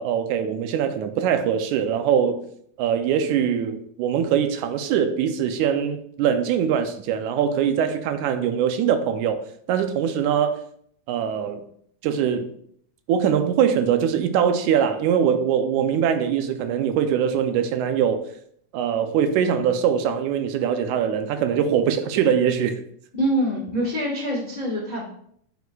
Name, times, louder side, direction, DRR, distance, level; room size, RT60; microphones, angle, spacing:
voice 1, 0.0-2.4 2.8-9.4 9.7-10.6 11.1-11.6 12.0-12.5 13.1-18.2 18.7-22.8, right 8 dB, 80° right, 2.0 m, -22 dB
voice 2, 23.2-25.0, equal, 60° left, 0.4 m, -25 dB
8.0 x 6.8 x 2.3 m
omnidirectional pair, 3.5 m